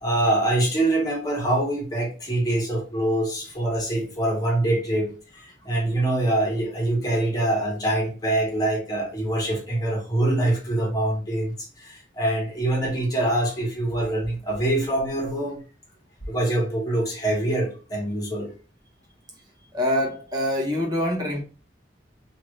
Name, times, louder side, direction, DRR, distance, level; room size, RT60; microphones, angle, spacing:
voice 1, 0.0-15.6 16.3-18.5, right 1 dB, 20° left, 1.3 m, -24 dB
voice 2, 19.7-21.4, left 1 dB, 25° right, 1.0 m, -25 dB
2.7 x 2.6 x 3.2 m
head